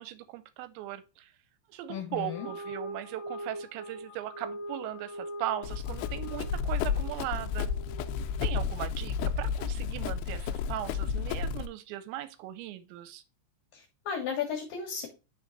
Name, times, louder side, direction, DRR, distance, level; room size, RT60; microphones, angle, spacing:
voice 1, 0.0-1.3 1.7-7.7 8.4-13.2, right 14 dB, 80° right, 2.6 m, -38 dB
voice 2, 1.9-2.5 13.7-15.1, left 7 dB, 65° left, 2.3 m, -34 dB
sound 1, 2.1-8.7, equal, 10° right, 1.5 m, -43 dB
Run, 5.6-11.7, left 6 dB, 90° left, 2.4 m, -32 dB
11.0 x 3.8 x 2.6 m
omnidirectional pair, 5.5 m